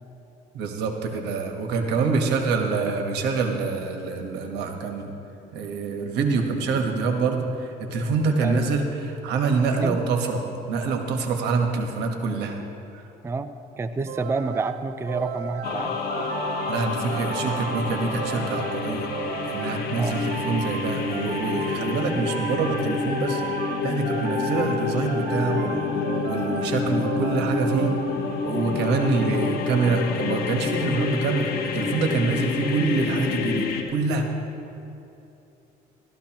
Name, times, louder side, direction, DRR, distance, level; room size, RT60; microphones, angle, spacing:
voice 1, 0.5-5.1 5.5-10.4 10.7-12.6 12.9-13.0 16.1-16.2 16.7-19.1 19.4-23.4 23.8-27.9 28.4-34.3, right 4 dB, 85° right, 4 dB, 1.3 m, -26 dB
voice 2, 8.4-8.7 9.7-10.0 13.2-13.5 13.8-16.0 19.9-20.2, right 3 dB, 15° right, 10 dB, 0.4 m, -28 dB
sound 1, 14.1-28.6, right 9 dB, 65° right, 0.5 m, -35 dB
sound 2, 15.6-33.8, left 5 dB, 65° left, 1.2 m, -28 dB
15.0 x 13.0 x 3.0 m, 2.9 s
cardioid pair, 110°, 17 cm